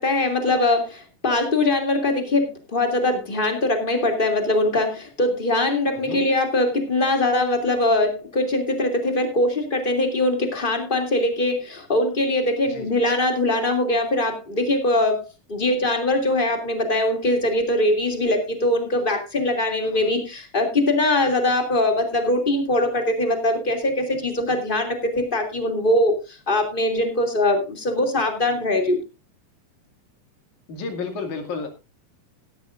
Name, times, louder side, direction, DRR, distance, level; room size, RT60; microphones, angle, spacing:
voice 1, 0.0-15.2 15.5-29.0, left 1 dB, 15° left, 4 dB, 2.2 m, -22 dB
voice 2, 12.7-13.0 19.8-20.1 30.7-31.7, left 4 dB, 60° left, 5 dB, 3.6 m, -32 dB
16.5 x 13.0 x 2.5 m, 0.27 s
omnidirectional pair, 4.1 m